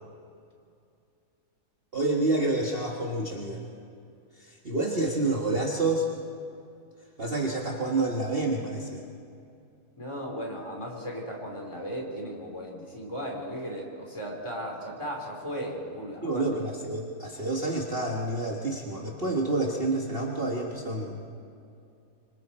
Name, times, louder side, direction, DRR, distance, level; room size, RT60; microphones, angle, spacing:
voice 1, 1.9-3.6 4.4-6.1 7.2-9.0 16.2-21.2, right 2 dB, 35° right, -1 dB, 1.6 m, -28 dB
voice 2, 10.0-16.4, equal, 15° left, -1 dB, 3.5 m, -36 dB
26.0 x 25.5 x 4.3 m, 2.6 s
omnidirectional pair, 1.7 m